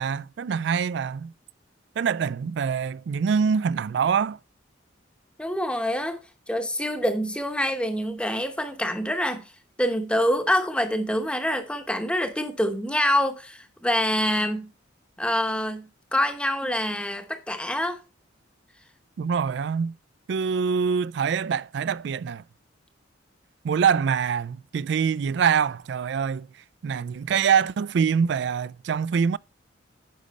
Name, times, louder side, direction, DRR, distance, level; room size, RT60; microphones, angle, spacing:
voice 1, 0.0-1.3 2.0-4.4 19.2-19.9 20.3-22.4 23.6-26.5 26.8-29.4, right 6 dB, 60° right, 0.3 m, -24 dB
voice 2, 5.4-6.2 6.5-9.5 9.8-14.7 15.2-18.0, equal, 5° left, 0.9 m, -26 dB
10.5 x 5.1 x 4.1 m
head